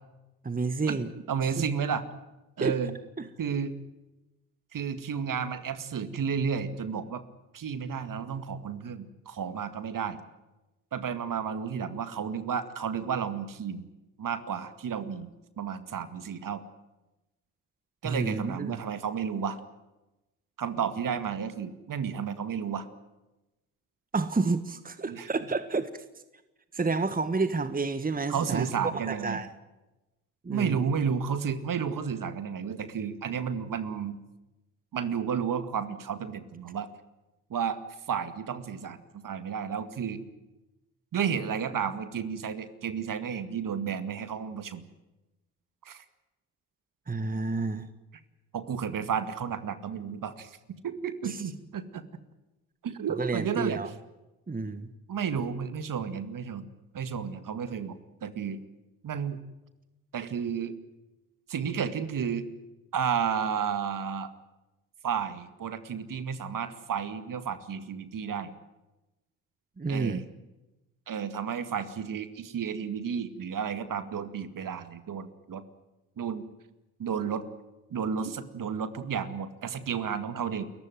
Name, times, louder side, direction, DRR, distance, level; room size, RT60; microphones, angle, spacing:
voice 1, 0.4-1.1 1.6-1.7 2.6-2.8 3.2-3.3 18.0-18.8 24.1-26.0 26.7-29.5 30.4-30.8 47.1-47.9 51.2-51.4 53.2-53.9 54.5-54.9 69.8-70.2, right 3 dB, 20° right, 12 dB, 1.6 m, -30 dB
voice 2, 1.3-2.0 2.6-2.9 3.4-3.8 4.7-7.2 7.5-10.2 10.9-13.9 14.2-15.3 15.6-16.6 18.0-19.6 20.6-22.9 25.0-25.3 28.3-29.4 30.5-34.2 34.9-36.9 37.5-37.8 38.1-40.2 41.1-44.8 45.8-46.0 48.5-50.6 50.8-52.0 52.8-53.8 55.1-56.6 56.9-58.6 59.0-59.4 60.1-60.7 61.5-62.4 62.9-64.3 65.0-68.5 69.9-70.2 71.1-75.6 76.2-76.5 77.0-77.4 77.9-80.7, right 7 dB, 50° right, 11 dB, 2.2 m, -32 dB
29.0 x 15.0 x 9.2 m, 1.0 s
hypercardioid pair, 50°, 41 cm